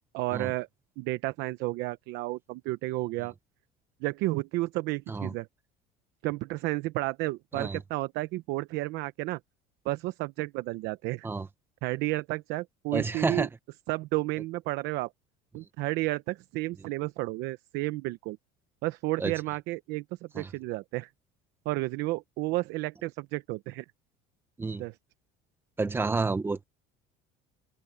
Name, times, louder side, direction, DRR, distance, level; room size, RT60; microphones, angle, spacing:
voice 1, 0.1-0.7 1.0-3.3 4.0-5.5 6.2-9.4 9.8-11.3 11.8-13.5 13.9-15.1 15.5-18.4 18.8-21.1 21.6-23.8 24.8-24.9, right 20 dB, 65° right, 0.8 m, -32 dB
voice 2, 12.9-13.5 19.2-19.3 20.3-20.5 24.6-24.8 25.8-26.6, right 3 dB, 10° right, 1.0 m, -30 dB
cardioid pair, 155°, 19 cm